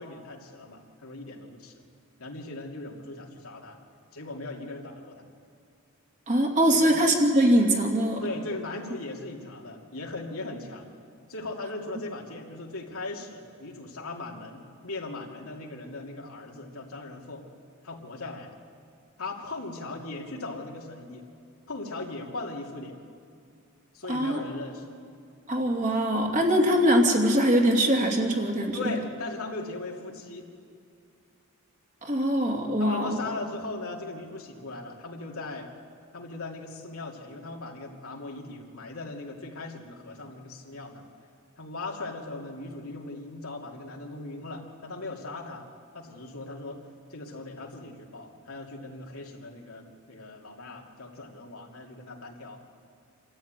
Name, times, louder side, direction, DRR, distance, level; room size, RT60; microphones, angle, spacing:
voice 1, 0.0-1.8 2.2-3.8 4.1-5.2 6.7-6.9 8.2-10.9 11.3-17.5 17.8-18.6 19.2-21.3 21.7-23.0 23.9-24.9 28.7-30.5 32.8-35.7 36.1-41.0 41.6-45.7 45.9-46.8 47.1-52.6, left 2 dB, 80° left, 0 dB, 2.7 m, -38 dB
voice 2, 6.3-8.2 24.1-24.4 25.5-28.8 32.0-33.2, equal, 35° right, 1 dB, 2.6 m, -22 dB
27.0 x 13.5 x 9.0 m, 2.4 s
head